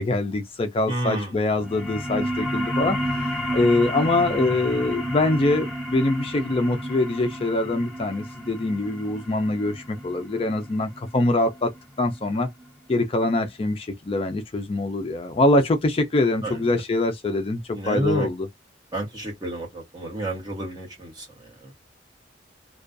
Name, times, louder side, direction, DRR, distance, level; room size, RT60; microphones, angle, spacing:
voice 1, 0.0-11.7 12.0-12.5 12.9-18.5, left 2 dB, 30° left, 0.3 m, -24 dB
voice 2, 0.9-1.4 16.4-16.8 17.7-18.3 18.9-21.7, right 1 dB, 20° right, 1.0 m, -30 dB
sound 1, 1.5-12.6, equal, 5° left, 0.8 m, -31 dB
2.4 x 2.2 x 2.4 m
head